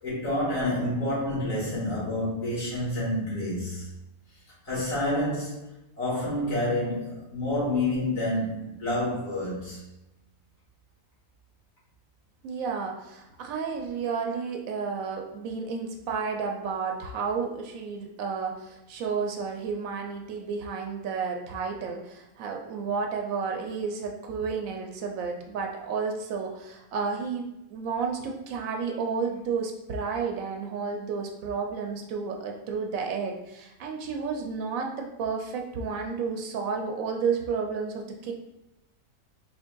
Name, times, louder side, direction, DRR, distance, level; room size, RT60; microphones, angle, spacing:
voice 1, 0.0-3.9 4.6-5.6 6.0-9.8, left 1 dB, 75° left, -7 dB, 2.1 m, -28 dB
voice 2, 12.4-38.3, right 5 dB, 85° right, 2 dB, 1.0 m, -31 dB
4.1 x 3.5 x 2.2 m, 0.91 s
omnidirectional pair, 1.4 m